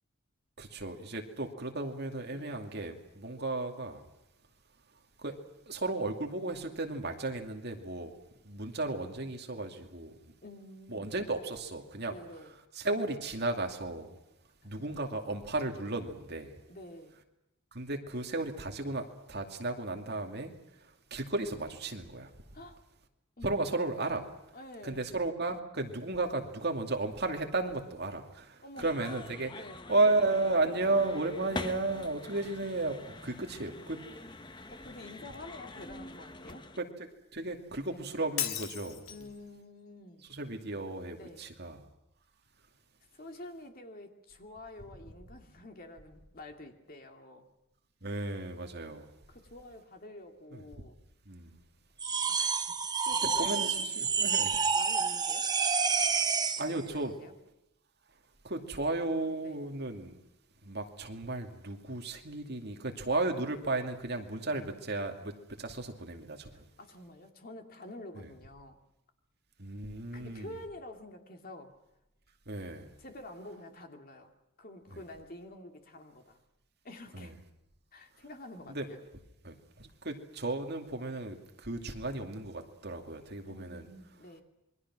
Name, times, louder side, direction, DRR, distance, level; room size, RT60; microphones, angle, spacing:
voice 1, 0.6-4.0 5.2-5.3 5.7-8.1 8.4-10.3 10.9-12.2 12.7-14.2 14.6-16.6 17.7-22.3 23.4-24.3 24.8-29.5 29.9-34.2 36.8-37.1 37.3-39.1 40.3-41.9 48.0-49.1 50.5-50.6 51.3-51.6 53.2-54.5 56.6-57.1 58.4-60.1 60.6-66.7 68.2-68.3 69.6-70.6 72.5-72.9 77.1-77.3 78.7-78.8 79.4-83.8, right 2 dB, 50° right, 2.4 m, -34 dB
voice 2, 10.4-11.1 12.1-12.5 14.6-14.8 16.7-17.2 22.5-22.8 23.4-23.5 24.5-25.1 28.6-28.9 29.5-29.8 34.7-36.6 37.9-38.1 39.1-40.3 41.2-41.5 43.1-47.5 49.3-51.0 52.3-55.5 56.6-57.3 59.4-59.6 64.5-64.6 66.5-68.8 70.1-71.7 73.0-74.3 74.6-76.4 76.8-77.4 77.9-79.0 83.5-84.4, left 1 dB, 40° left, 2.6 m, -48 dB
sound 1, 28.8-36.8, left 2 dB, 20° left, 0.8 m, -45 dB
Shatter, 38.4-39.4, left 10 dB, 75° left, 1.6 m, -35 dB
sound 2, 52.0-56.7, right 5 dB, 20° right, 0.8 m, -29 dB
27.5 x 22.5 x 6.2 m
head